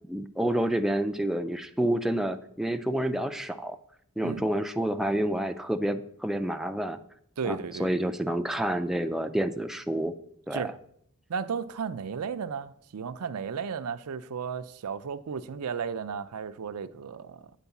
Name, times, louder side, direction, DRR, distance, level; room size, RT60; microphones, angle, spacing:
voice 1, 0.1-3.8 4.2-7.0 7.4-10.1 10.5-10.7, right 1 dB, ahead, 0.3 m, -29 dB
voice 2, 7.4-7.9 10.5-10.7 11.3-17.4, right 6 dB, 80° right, 0.5 m, -34 dB
9.0 x 4.6 x 7.0 m
head